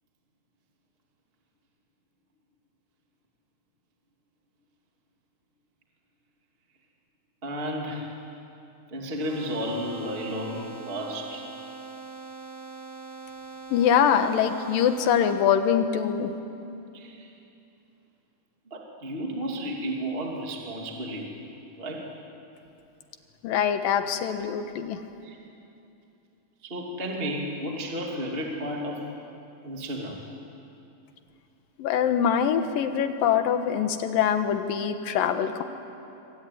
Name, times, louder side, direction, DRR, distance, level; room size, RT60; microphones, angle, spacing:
voice 1, 7.4-8.1 8.9-11.5 16.9-17.3 18.7-21.3 21.8-22.1 25.2-25.4 26.6-29.1 29.6-30.2, equal, 20° right, 0 dB, 2.4 m, -32 dB
sound 1, 9.2-15.4, right 4 dB, 75° right, 9.4 m, -42 dB
voice 2, 13.7-16.3 23.4-25.0 31.8-35.6, left 8 dB, 80° left, 8 dB, 3.0 m, -24 dB
26.5 x 24.0 x 9.3 m, 2.8 s
omnidirectional pair, 4.0 m